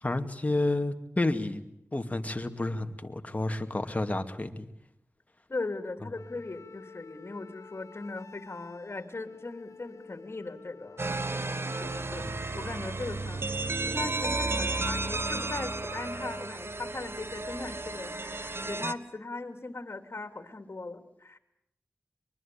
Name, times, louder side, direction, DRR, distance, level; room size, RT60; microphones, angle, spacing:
voice 1, 0.0-1.6 1.9-4.7 12.2-12.3, left 2 dB, 30° left, 7 dB, 2.2 m, -30 dB
voice 2, 5.5-11.0 11.8-21.4, left 3 dB, 50° left, 8 dB, 3.1 m, -39 dB
Wind instrument woodwind instrument, 6.1-12.0, left 4 dB, 80° left, 1.3 m, -50 dB
sound 1, 11.0-18.9, right 2 dB, 50° right, 1.3 m, -33 dB
23.5 x 23.0 x 8.7 m, 0.77 s
wide cardioid pair, 50°, 5 cm